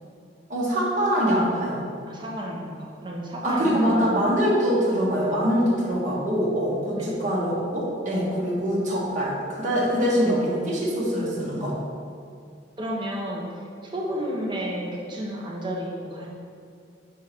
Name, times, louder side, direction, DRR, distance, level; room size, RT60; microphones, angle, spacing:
voice 1, 0.5-1.8 3.4-11.7, equal, 45° right, -5 dB, 1.2 m, -24 dB
voice 2, 2.1-4.1 7.0-7.2 12.8-16.3, equal, 25° right, -3 dB, 0.8 m, -32 dB
6.0 x 3.7 x 4.4 m, 2.3 s
head